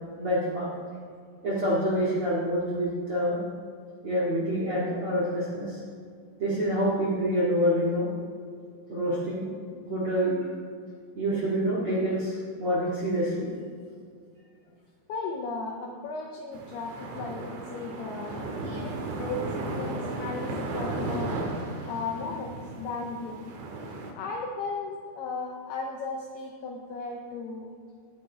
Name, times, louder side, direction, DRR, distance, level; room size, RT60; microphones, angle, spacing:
voice 1, 0.2-0.7 1.4-3.4 4.0-5.8 6.4-8.1 8.9-10.4 11.1-13.5, equal, 50° right, -7 dB, 1.6 m, -27 dB
voice 2, 15.1-21.4 21.9-23.5 24.2-27.7, left 3 dB, 90° left, 0 dB, 2.2 m, -36 dB
sound 1, 16.5-24.1, right 2 dB, 80° right, 4.0 m, -35 dB
18.0 x 8.7 x 3.5 m, 2.2 s
omnidirectional pair, 5.8 m